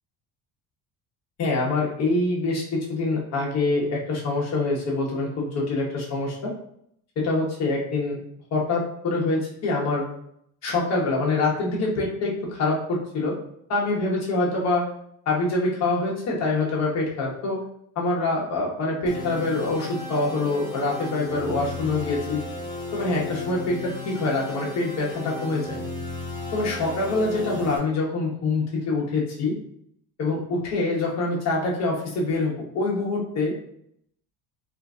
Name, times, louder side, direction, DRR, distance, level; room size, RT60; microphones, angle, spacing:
voice 1, 1.4-6.5 7.2-8.2 8.5-10.0 10.6-13.4 13.7-14.9 15.3-17.6 18.0-22.4 22.9-25.7 26.5-29.6 30.2-33.5, left 2 dB, 45° left, -3 dB, 1.0 m, -25 dB
sound 1, 19.1-27.8, left 2 dB, 10° left, 0.4 m, -35 dB
3.6 x 2.6 x 2.4 m, 0.71 s
cardioid pair, 170°, 39 cm